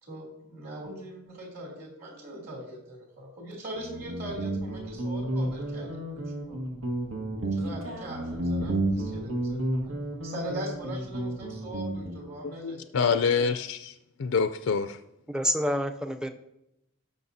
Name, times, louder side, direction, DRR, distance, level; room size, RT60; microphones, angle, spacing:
voice 1, 0.0-6.6 7.5-12.8 13.4-13.5, right 1 dB, 50° right, -2 dB, 3.0 m, -41 dB
Guitar, 3.8-12.3, right 1 dB, 90° right, 1.7 m, -31 dB
voice 2, 12.4-13.9 14.2-15.0, left 5 dB, 75° left, 9 dB, 0.4 m, -26 dB
voice 3, 15.3-16.3, equal, 5° right, 6 dB, 0.5 m, -28 dB
17.5 x 6.2 x 2.7 m, 0.86 s
head